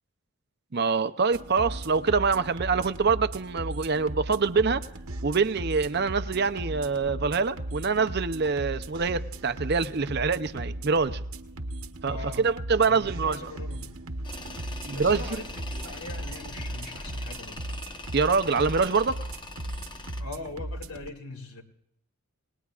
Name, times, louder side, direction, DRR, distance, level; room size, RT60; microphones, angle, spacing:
voice 1, 0.7-4.8 5.2-11.2 12.0-13.5 14.8-15.4 18.1-19.2, right 4 dB, 45° right, 0.6 m, -25 dB
sound 1, 1.3-21.1, right 1 dB, 75° right, 1.1 m, -37 dB
voice 2, 12.1-12.5 12.8-14.0 14.9-17.6 20.2-21.6, left 3 dB, 75° left, 2.4 m, -41 dB
Tools, 14.2-20.2, left 2 dB, 20° left, 0.8 m, -42 dB
29.5 x 19.5 x 2.4 m
head